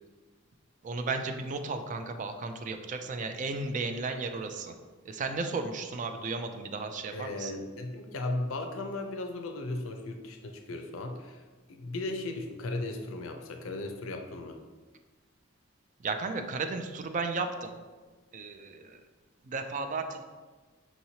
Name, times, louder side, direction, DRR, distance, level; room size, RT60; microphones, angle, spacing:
voice 1, 0.8-4.7 5.0-7.5 16.0-17.8 18.3-19.0 19.4-20.2, right 3 dB, 40° right, 7 dB, 0.3 m, -34 dB
voice 2, 7.1-11.4 11.7-14.6, left 2 dB, 80° left, 5 dB, 0.5 m, -36 dB
5.5 x 3.0 x 2.7 m, 1.3 s
head